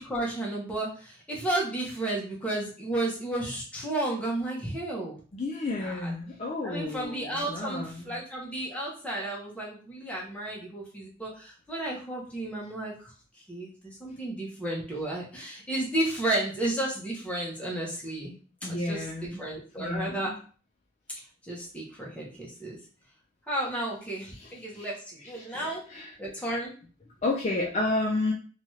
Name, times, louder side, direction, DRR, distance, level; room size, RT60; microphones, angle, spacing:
voice 1, 0.0-5.2 5.7-6.1 6.6-12.9 13.5-18.3 18.6-20.4 21.5-22.8 23.5-25.8 26.2-26.7, right 1 dB, 5° left, -4 dB, 0.8 m, -33 dB
voice 2, 5.3-8.2 18.6-19.4 19.8-20.4 24.4-24.5 24.7-24.8 25.4-25.6 25.9-26.1 27.2-28.3, left 2 dB, 35° left, -3 dB, 0.4 m, -31 dB
2.8 x 2.3 x 3.0 m, 0.39 s
head